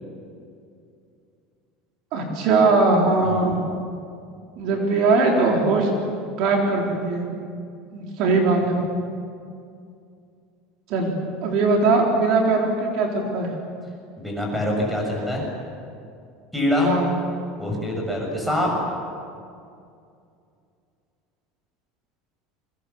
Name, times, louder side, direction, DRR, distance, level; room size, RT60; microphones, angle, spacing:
voice 1, 2.1-3.6 4.6-5.9 6.4-7.3 7.9-8.8 10.9-13.5 16.8-17.1, right 3 dB, 50° right, 0 dB, 4.0 m, -20 dB
voice 2, 14.2-15.5 16.5-16.9 17.6-18.7, left 1 dB, ahead, -1 dB, 6.7 m, -24 dB
28.5 x 24.5 x 7.2 m, 2.4 s
cardioid pair, 165°, 0 cm